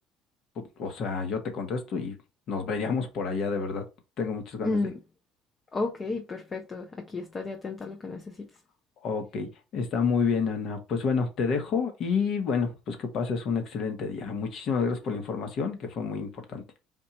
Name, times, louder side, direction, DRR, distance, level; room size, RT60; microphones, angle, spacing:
voice 1, 0.5-2.2 2.5-3.8 4.2-4.8 9.0-16.6, left 5 dB, 55° left, 1.6 m, -29 dB
voice 2, 4.6-5.0 5.7-8.5 16.1-16.2, left 3 dB, 30° left, 0.9 m, -32 dB
4.4 x 2.8 x 4.4 m
supercardioid pair, 105°, 0 cm